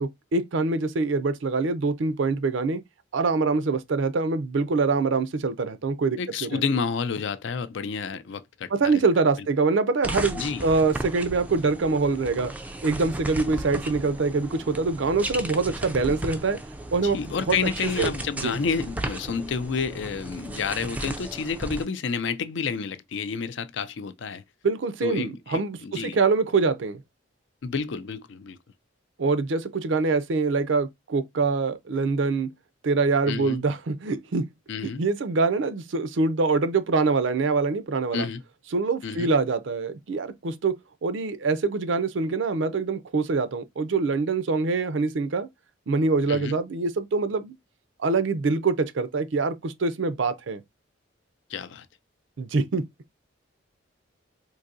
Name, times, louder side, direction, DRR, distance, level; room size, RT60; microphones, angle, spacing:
voice 1, 0.0-2.8 3.1-6.6 8.7-12.5 12.8-16.6 16.9-17.6 18.0-18.1 18.4-18.5 24.6-27.0 29.2-32.5 32.8-34.5 34.8-38.3 38.7-40.8 41.0-45.5 45.9-47.5 48.0-50.6 52.4-52.8, right 4 dB, 70° right, 0.5 m, -24 dB
voice 2, 6.2-8.7 10.4-10.6 17.0-24.4 25.0-26.2 27.6-28.6 33.3-33.6 34.7-35.0 38.1-38.4 39.0-39.3 46.3-46.6 51.5-51.9, left 5 dB, 65° left, 0.4 m, -30 dB
sound 1, 10.0-21.8, right 1 dB, 10° right, 0.3 m, -35 dB
3.9 x 2.6 x 2.5 m
head